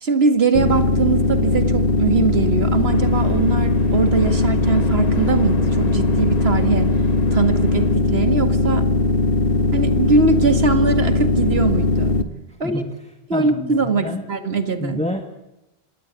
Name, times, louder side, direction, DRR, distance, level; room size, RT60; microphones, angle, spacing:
voice 1, 0.0-6.9 7.3-8.9 9.7-12.1 12.6-12.8 13.3-15.0, right 4 dB, 75° right, 8 dB, 2.2 m, -21 dB
sound 1, 0.5-12.2, left 2 dB, 65° left, 1.6 m, -19 dB
sound 2, 2.9-8.0, left 3 dB, 40° left, 1.1 m, -34 dB
voice 2, 12.6-13.0 13.3-14.2 14.8-15.3, equal, 5° left, 5 dB, 1.6 m, -28 dB
25.5 x 18.0 x 8.2 m, 0.94 s
omnidirectional pair, 1.0 m